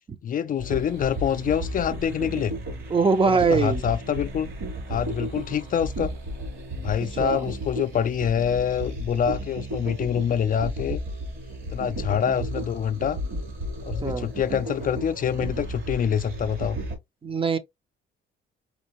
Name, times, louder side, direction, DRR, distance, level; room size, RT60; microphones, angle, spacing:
voice 1, 0.2-2.6 3.2-4.5 4.9-6.1 6.8-11.0 11.7-13.2 13.9-16.8, left 8 dB, 45° left, 0.4 m, -26 dB
sound 1, 0.6-16.9, right 1 dB, 80° right, 2.9 m, -34 dB
voice 2, 2.9-3.8 7.2-7.5 14.0-14.3 17.2-17.6, right 4 dB, 25° right, 0.5 m, -22 dB
4.3 x 2.5 x 2.9 m
cardioid pair, 90°, 20 cm